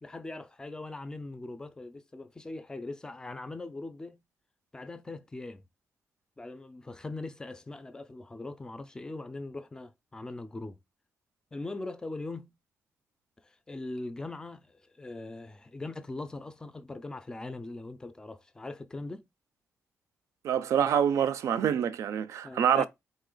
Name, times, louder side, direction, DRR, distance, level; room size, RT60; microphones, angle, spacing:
voice 1, 0.0-4.2 4.7-5.6 6.4-10.8 11.5-12.5 13.4-19.2 22.4-22.9, left 2 dB, 15° left, 0.4 m, -41 dB
voice 2, 20.4-22.9, right 8 dB, 70° right, 0.4 m, -26 dB
4.1 x 2.8 x 3.8 m
wide cardioid pair, 180°, 5 cm